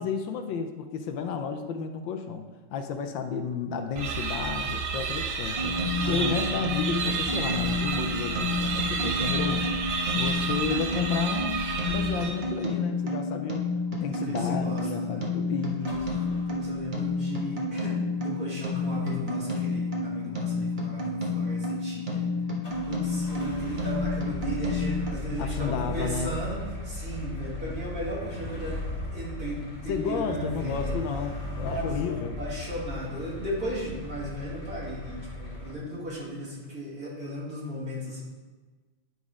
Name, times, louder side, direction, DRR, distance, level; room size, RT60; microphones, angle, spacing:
voice 1, 0.0-5.8 6.1-11.6 11.9-13.6 13.9-16.4 25.4-26.3 29.9-32.4, left 6 dB, 75° left, 5 dB, 1.3 m, -32 dB
sound 1, 3.9-12.6, right 5 dB, 70° right, 0.7 m, -30 dB
sound 2, 5.5-25.1, left 3 dB, 30° right, 1.0 m, -30 dB
voice 2, 6.0-6.4 14.1-15.3 16.5-22.3 22.9-30.9 31.7-38.2, equal, 45° right, -8 dB, 2.8 m, -35 dB
sound 3, 15.8-17.1 22.6-35.7, left 2 dB, 20° left, 1.5 m, -37 dB
11.0 x 4.0 x 4.8 m, 1.3 s
omnidirectional pair, 2.2 m